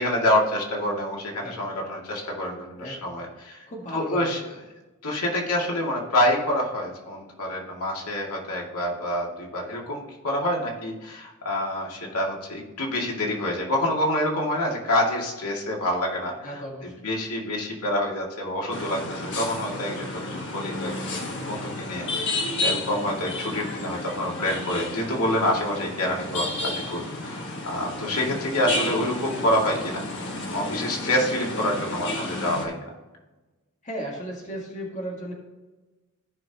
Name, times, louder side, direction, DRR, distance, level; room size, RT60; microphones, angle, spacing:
voice 1, 0.0-3.6 3.9-4.4 5.0-16.5 17.0-30.0 30.5-32.9, left 1 dB, 80° left, -2 dB, 2.3 m, -27 dB
voice 2, 2.8-3.2 3.7-4.3 16.3-17.1 33.8-35.3, right 1 dB, 35° left, -2 dB, 1.9 m, -35 dB
sound 1, 18.7-32.7, left 2 dB, 55° left, 1.5 m, -32 dB
15.5 x 5.7 x 2.9 m, 1.2 s
head